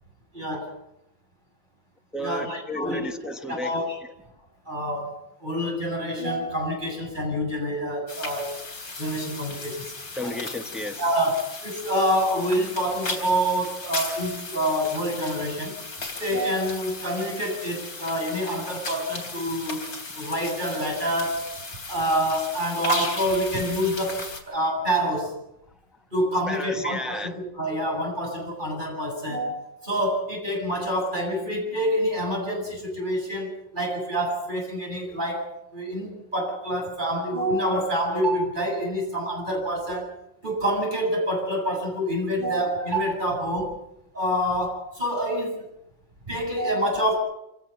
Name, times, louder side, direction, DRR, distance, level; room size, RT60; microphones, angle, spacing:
voice 1, 0.3-0.7 2.2-3.1 3.5-4.0 4.7-5.1 5.4-8.6 9.0-10.4 11.0-15.8 16.2-19.8 20.1-21.5 21.9-25.3 26.1-40.1 40.4-43.8 44.1-45.5 46.3-47.2, equal, 25° right, 8.0 m, -27 dB
voice 2, 2.1-3.8 10.2-11.0 26.5-27.3, left 1 dB, ahead, 0.9 m, -32 dB
sound 1, 8.1-24.4, left 3 dB, 70° left, 4.5 m, -36 dB
26.5 x 17.5 x 5.8 m
omnidirectional pair, 2.1 m